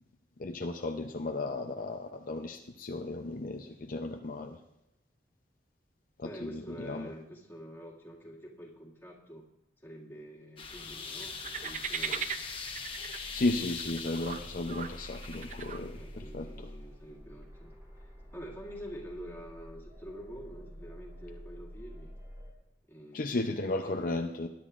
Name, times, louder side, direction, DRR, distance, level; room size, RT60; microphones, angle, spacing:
voice 1, 0.4-4.6 6.2-7.1 13.3-16.7 23.1-24.5, left 2 dB, 50° left, 4 dB, 0.6 m, -34 dB
voice 2, 6.2-9.5 9.8-12.3 15.9-22.1 22.9-23.5 23.8-24.2, equal, 15° left, -3 dB, 2.1 m, -47 dB
sound 1, 10.6-16.2, left 5 dB, 30° left, 1.1 m, -42 dB
sound 2, 10.6-22.5, equal, 20° right, 2.9 m, -49 dB
sound 3, 11.2-16.2, right 7 dB, 45° right, 0.6 m, -40 dB
20.5 x 10.5 x 2.5 m, 0.89 s
head